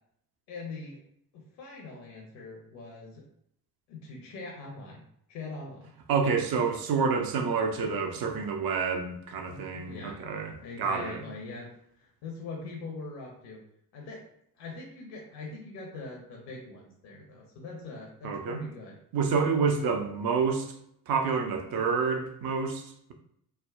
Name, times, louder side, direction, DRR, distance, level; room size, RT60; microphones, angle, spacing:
voice 1, 0.5-1.0 1.3-3.2 3.9-5.0 5.3-5.9 9.5-10.3 10.6-11.7 12.0-13.6 13.9-14.2 14.6-19.0, left 3 dB, 55° left, -1 dB, 0.8 m, -42 dB
voice 2, 6.1-11.3 18.2-18.6 19.1-20.7 21.1-23.1, right 5 dB, 50° right, 4 dB, 0.7 m, -28 dB
3.4 x 2.1 x 2.3 m, 0.72 s
hypercardioid pair, 55°, 47 cm